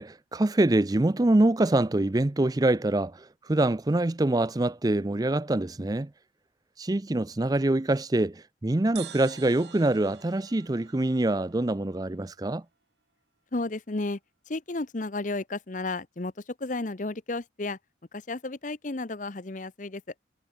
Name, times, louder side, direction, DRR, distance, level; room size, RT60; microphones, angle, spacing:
voice 1, 0.0-6.1 6.8-12.6, right 2 dB, 20° right, 0.5 m, -25 dB
sound 1, 9.0-12.5, right 10 dB, 65° right, 5.5 m, -48 dB
voice 2, 13.5-14.2 14.5-17.8 18.1-20.0, left 2 dB, 40° left, 0.9 m, -33 dB
head